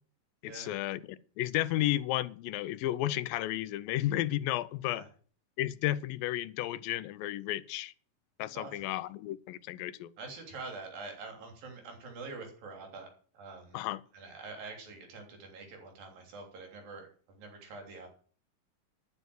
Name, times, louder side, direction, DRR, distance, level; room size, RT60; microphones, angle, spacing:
voice 1, 0.4-1.0 1.4-5.1 5.6-7.9 8.4-10.1 13.7-14.0, left 14 dB, 90° left, 2.5 m, -33 dB
voice 2, 8.5-8.9 10.2-13.1 13.3-13.8 14.1-17.1 17.3-18.1, right 3 dB, 85° right, 5.1 m, -45 dB
11.0 x 11.0 x 6.3 m
omnidirectional pair, 4.0 m